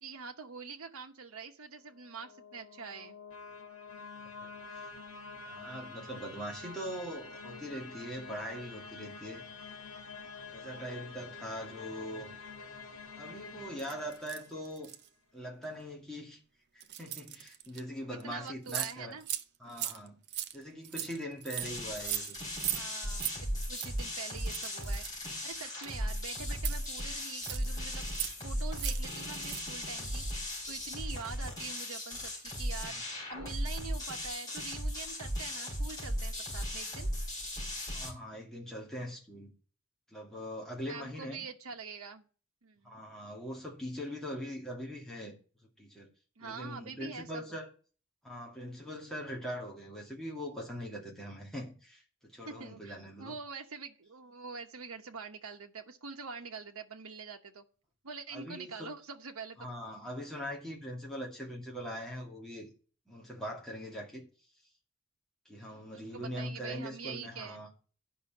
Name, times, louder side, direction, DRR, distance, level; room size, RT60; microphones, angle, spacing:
voice 1, 0.0-3.2 18.1-19.3 22.7-37.1 40.8-42.2 42.6-43.0 46.4-47.4 52.5-57.6 58.0-59.7 65.5-67.6, right 5 dB, 85° right, 1.0 m, -45 dB
sound 1, 1.9-14.9, left 4 dB, 85° left, 1.9 m, -48 dB
voice 2, 5.5-9.5 10.5-12.3 13.2-14.9 15.3-16.4 16.7-19.2 19.6-20.2 20.5-22.4 37.9-39.5 40.1-41.5 42.8-45.4 45.8-46.1 46.4-47.7 48.2-53.4 58.3-58.9 59.6-62.7 63.1-64.3 65.5-67.7, equal, ahead, 2.3 m, -41 dB
sound 2, 13.8-15.1 15.6-15.8 16.8-17.8 18.2-18.3 18.5-18.9 19.2-19.4 19.7-22.8 23.1-23.4 23.6-23.9 24.4-26.1 26.5-27.7 28.0-28.4 28.7-29.0 29.3-29.7, right 12 dB, 50° right, 0.6 m, -38 dB
sound 3, 21.6-38.1, equal, 20° left, 4.4 m, -37 dB
10.0 x 5.6 x 7.1 m
head